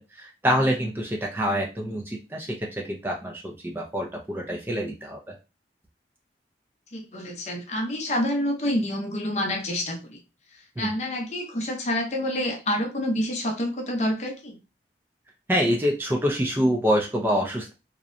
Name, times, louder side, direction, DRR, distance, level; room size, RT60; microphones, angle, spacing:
voice 1, 0.2-5.3 10.8-10.9 15.5-17.7, equal, 10° right, 0 dB, 0.3 m, -26 dB
voice 2, 6.9-10.2 10.8-14.6, left 1 dB, 40° left, 2 dB, 0.5 m, -28 dB
2.7 x 2.1 x 2.4 m, 0.28 s
head